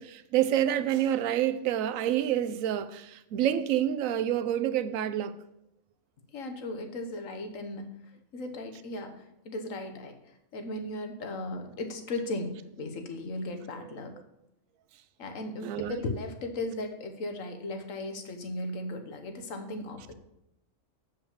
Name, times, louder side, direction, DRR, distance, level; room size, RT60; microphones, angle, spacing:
voice 1, 0.0-5.3 15.6-16.0, right 11 dB, 85° right, 1.0 m, -28 dB
voice 2, 6.3-8.0 8.3-14.1 15.2-20.1, left 2 dB, 75° left, 1.5 m, -37 dB
7.2 x 5.4 x 7.1 m
omnidirectional pair, 1.4 m